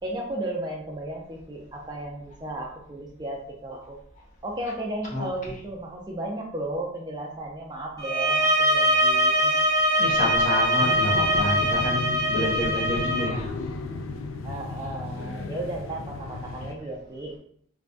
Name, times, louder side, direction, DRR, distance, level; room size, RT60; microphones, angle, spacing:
voice 1, 0.0-4.0 4.4-9.6 14.4-17.3, right 1 dB, 20° right, -1 dB, 0.5 m, -34 dB
sound 1, 8.0-13.3, equal, 20° left, 0.8 m, -22 dB
voice 2, 10.0-13.5, left 1 dB, 40° left, -5 dB, 1.1 m, -28 dB
sound 2, 10.8-16.8, left 3 dB, 80° left, 0.4 m, -35 dB
3.4 x 3.3 x 2.6 m, 0.64 s
head